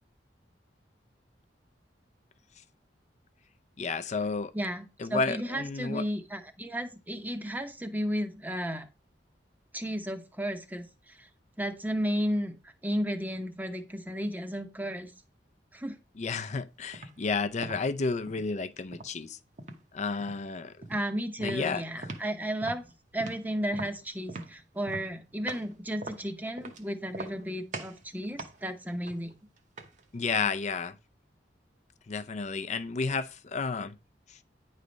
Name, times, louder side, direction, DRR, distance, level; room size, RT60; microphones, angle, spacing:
voice 1, 3.8-4.5 5.0-6.0 16.2-19.4 19.9-20.7 21.4-22.1 30.1-31.0 32.1-34.0 34.3-34.4, left 4 dB, 40° left, 0.5 m, -31 dB
voice 2, 4.5-8.9 9.7-11.3 11.6-12.5 12.8-15.1 15.7-16.0 20.9-22.8 23.1-29.3, equal, 10° right, 0.8 m, -33 dB
sound 1, 16.9-17.2 17.6-18.5 18.9-19.8 20.2-20.5 20.8-21.1 21.4-22.3 22.6-25.7 26.0-26.8 27.1-27.5 27.7-28.0 28.4-30.1, right 2 dB, 45° right, 0.9 m, -42 dB
9.6 x 3.3 x 5.1 m
head